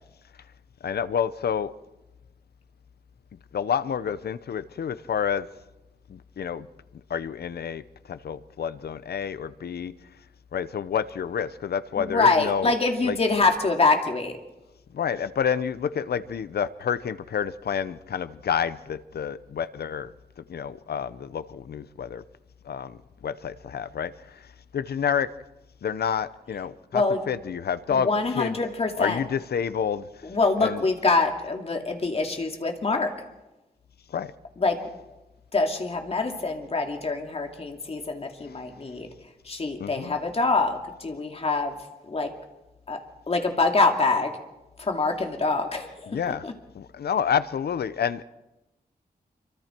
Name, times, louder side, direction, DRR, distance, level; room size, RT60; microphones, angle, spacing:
voice 1, 0.8-1.7 3.5-5.5 6.1-6.7 7.1-9.9 10.5-12.7 13.0-13.2 14.9-20.1 20.4-22.2 22.6-24.5 24.7-25.3 25.8-28.1 28.4-28.6 29.0-30.1 30.6-30.9 34.1-34.3 38.4-38.6 39.8-40.2 46.1-46.4 46.7-48.2, left 7 dB, 90° left, 0.8 m, -29 dB
voice 2, 12.0-14.3 26.9-27.2 27.9-29.2 30.2-33.1 34.6-34.8 35.5-39.1 39.5-41.7 42.1-42.3 42.9-43.0 43.3-44.3 44.8-46.1 46.4-46.5, left 3 dB, 40° left, 2.5 m, -25 dB
26.5 x 24.5 x 4.6 m
wide cardioid pair, 140°, 16 cm